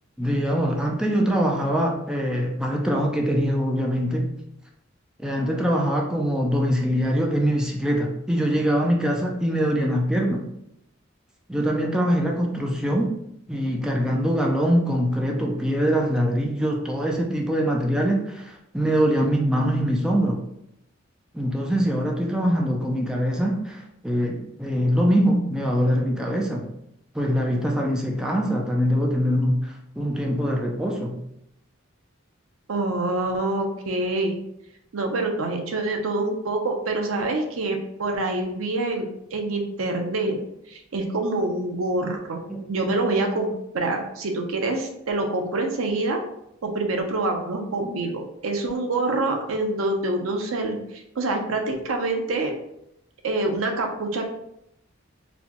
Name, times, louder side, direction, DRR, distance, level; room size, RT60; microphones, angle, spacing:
voice 1, 0.2-4.3 5.2-10.4 11.5-13.2 13.5-20.4 21.3-26.7 27.1-31.2 42.5-42.6, equal, 5° right, -1 dB, 0.4 m, -23 dB
voice 2, 32.7-34.4 34.9-40.4 40.7-42.4 42.7-46.2 46.6-52.5 53.2-54.3, right 2 dB, 85° right, 3 dB, 0.6 m, -26 dB
4.1 x 2.3 x 2.9 m, 0.79 s
head